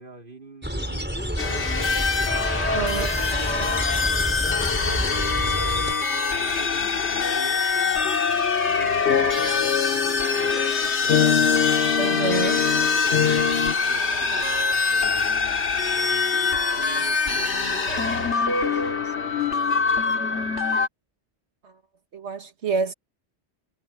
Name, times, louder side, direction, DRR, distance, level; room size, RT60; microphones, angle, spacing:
voice 1, 0.0-1.8 2.5-8.9 9.2-20.6, right 2 dB, 50° right, 3.7 m, -43 dB
sound 1, 0.6-5.9, equal, 10° right, 4.9 m, -29 dB
sound 2, 1.4-20.9, left 4 dB, 85° left, 2.2 m, -24 dB
voice 2, 2.7-3.1 12.0-12.6 21.6-21.7 22.1-22.9, right 5 dB, 75° right, 1.7 m, -27 dB
sound 3, 9.1-13.7, left 8 dB, 60° left, 0.8 m, -24 dB
omnidirectional pair, 1.1 m